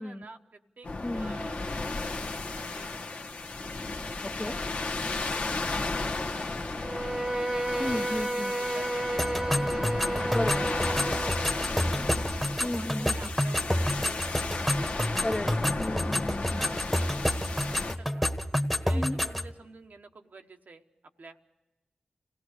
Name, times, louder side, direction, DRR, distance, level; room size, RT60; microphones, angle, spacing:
voice 1, 0.0-0.9 1.1-3.3 3.8-7.0 7.5-10.3 10.8-11.8 12.2-15.7 16.6-18.3 18.7-20.8 21.2-21.4, right 3 dB, 70° right, 5 dB, 1.1 m, -50 dB
sound 1, 0.8-17.9, left 3 dB, 70° left, 1.2 m, -34 dB
voice 2, 1.0-1.4 4.2-4.6 7.8-8.5 10.3-10.7 12.6-13.1 15.2-16.6 18.9-19.2, left 1 dB, 25° left, 8 dB, 0.9 m, -34 dB
Bowed string instrument, 6.8-11.7, right 1 dB, 25° right, 1.1 m, -31 dB
sound 2, 9.2-19.5, left 1 dB, 5° left, 1.3 m, -29 dB
26.0 x 17.0 x 6.6 m, 1.1 s
cardioid pair, 45°, 3 cm